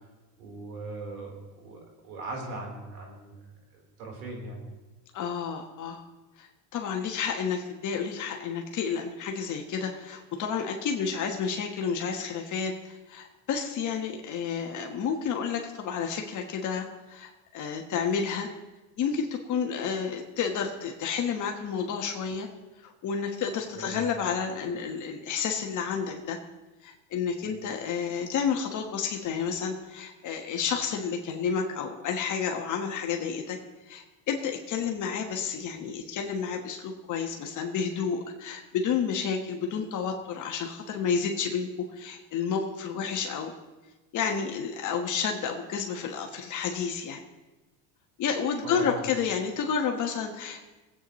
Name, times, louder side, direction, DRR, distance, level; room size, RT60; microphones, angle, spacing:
voice 1, 0.4-3.4 3.7-4.6 23.7-24.1 27.4-27.6 48.6-49.1, right 2 dB, 90° right, 0 dB, 4.0 m, -39 dB
voice 2, 5.1-6.0 6.4-18.5 19.0-22.5 22.8-26.4 26.8-33.6 33.9-41.7 42.0-43.5 44.1-47.2 48.2-50.6, left 6 dB, 45° left, 2 dB, 1.3 m, -30 dB
22.5 x 8.6 x 3.1 m, 1.1 s
supercardioid pair, 125°, 43 cm